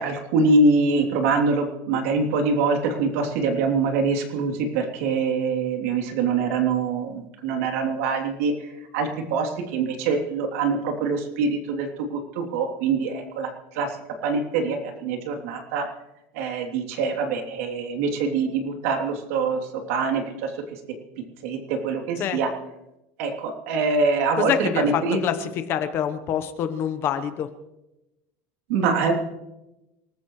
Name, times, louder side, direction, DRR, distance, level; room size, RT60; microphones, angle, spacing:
voice 1, 0.0-8.5 8.9-13.5 13.7-13.9 14.2-15.8 16.3-19.6 19.9-20.5 21.4-22.5 23.2-25.2 28.7-29.1, right 4 dB, 85° right, 2 dB, 3.1 m, -24 dB
voice 2, 24.4-27.5, left 9 dB, 35° left, 9 dB, 1.0 m, -26 dB
27.5 x 14.5 x 3.2 m, 0.95 s
cardioid pair, 175°, 7 cm